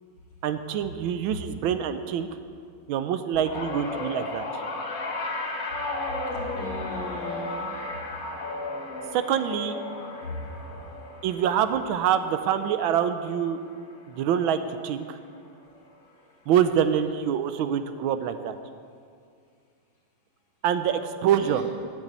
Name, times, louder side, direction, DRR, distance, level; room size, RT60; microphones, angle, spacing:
voice 1, 0.4-2.3 2.9-4.4 9.1-9.8 11.2-13.6 14.1-15.2 16.5-18.6 20.6-21.6, right 9 dB, 80° right, 10 dB, 1.4 m, -25 dB
sound 1, 3.5-13.9 14.2-14.6 15.8-15.9, left 2 dB, 50° left, 1.6 m, -34 dB
voice 2, 6.3-7.8 10.2-10.6 21.4-21.7, left 2 dB, 75° left, -3 dB, 2.8 m, -36 dB
9.9 x 7.2 x 8.1 m, 2.3 s
omnidirectional pair, 2.2 m